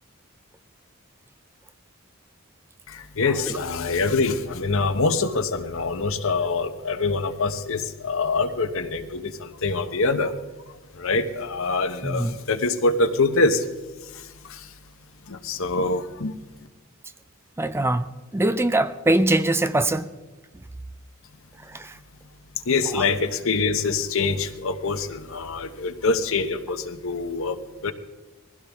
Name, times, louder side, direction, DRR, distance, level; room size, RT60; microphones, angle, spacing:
voice 1, 2.9-10.3 11.0-13.6 15.3-16.3 22.7-27.6 27.8-27.9, left 3 dB, 65° left, 1.0 m, -24 dB
voice 2, 12.0-12.4 17.6-18.1 18.3-20.1 21.7-21.9 23.0-23.1, right 1 dB, 10° right, 0.5 m, -22 dB
21.0 x 16.0 x 3.6 m
head